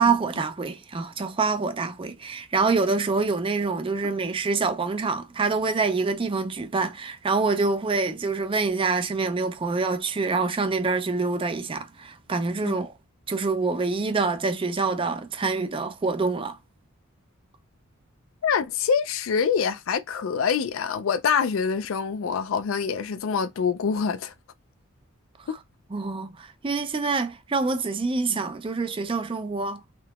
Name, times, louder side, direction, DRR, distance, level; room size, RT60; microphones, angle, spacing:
voice 1, 0.0-12.9 13.3-16.6 25.9-29.8, right 4 dB, 25° right, 0.4 m, -26 dB
voice 2, 18.4-24.3 25.5-25.6 28.3-28.4, left 6 dB, 65° left, 0.4 m, -25 dB
3.7 x 2.7 x 2.3 m
head